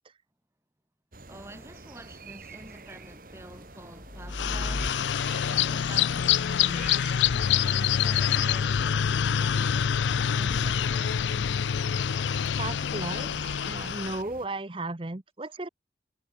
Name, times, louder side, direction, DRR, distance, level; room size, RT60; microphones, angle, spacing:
sound 1, 1.1-14.5, right 3 dB, 50° right, 2.8 m, -48 dB
voice 1, 1.3-5.2 5.4-7.2 7.6-11.4, right 1 dB, 15° right, 1.8 m, -48 dB
sound 2, 3.9-13.9, left 2 dB, 45° left, 1.0 m, -42 dB
sound 3, 4.3-14.2, left 8 dB, 85° left, 0.4 m, -26 dB
voice 2, 12.6-15.7, right 2 dB, 30° right, 0.9 m, -35 dB
head